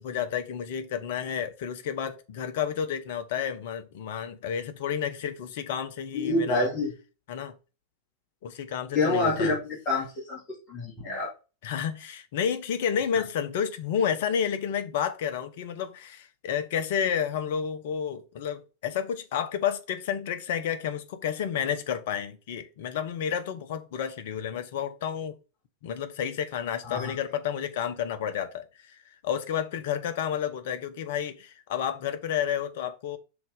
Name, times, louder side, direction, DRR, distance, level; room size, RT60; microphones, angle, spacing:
voice 1, 0.0-6.7 7.3-7.5 8.4-9.5 11.6-25.4 25.8-33.2, left 8 dB, 55° left, 0.9 m, -31 dB
voice 2, 6.1-6.9 8.9-10.4 10.7-11.3 26.8-27.1, left 2 dB, 30° left, 2.4 m, -27 dB
6.0 x 3.9 x 5.2 m
figure-of-eight pair, 90°, 0 cm